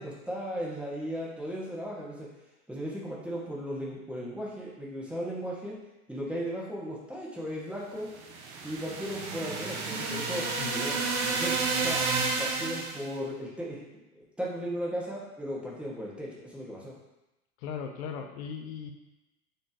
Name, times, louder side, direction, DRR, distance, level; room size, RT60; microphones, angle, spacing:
voice 1, 0.0-2.3 2.7-5.8 6.1-8.1 8.6-12.0 12.4-13.9 14.4-16.9, equal, 5° right, -6 dB, 1.8 m, -36 dB
sound 1, 8.1-13.1, right 4 dB, 45° right, 1.1 m, -31 dB
voice 2, 17.6-18.9, left 6 dB, 50° left, 5 dB, 0.9 m, -37 dB
7.8 x 4.2 x 3.0 m, 0.97 s
figure-of-eight pair, 80°, 44 cm